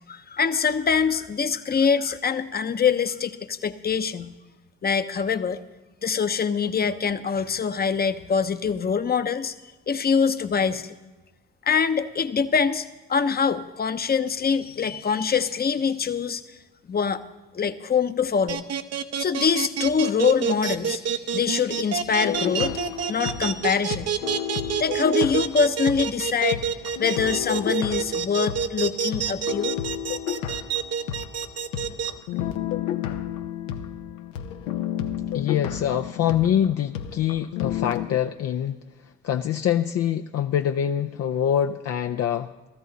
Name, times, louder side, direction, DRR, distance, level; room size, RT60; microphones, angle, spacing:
voice 1, 0.1-4.3 4.8-5.6 6.0-9.5 9.9-10.9 11.7-16.6 16.9-17.2 17.5-18.6 19.2-22.8 23.1-24.1 24.6-26.7 27.0-29.8, left 6 dB, 30° left, 10 dB, 0.8 m, -24 dB
sound 1, 18.5-32.1, right 7 dB, 55° right, 0.9 m, -27 dB
sound 2, 22.2-26.2 26.5-38.1, left 10 dB, 85° left, 0.9 m, -31 dB
voice 2, 35.3-38.8 39.2-42.5, left 10 dB, 50° left, 6 dB, 0.6 m, -24 dB
16.0 x 13.5 x 4.1 m, 1.1 s
hypercardioid pair, 60°, 31 cm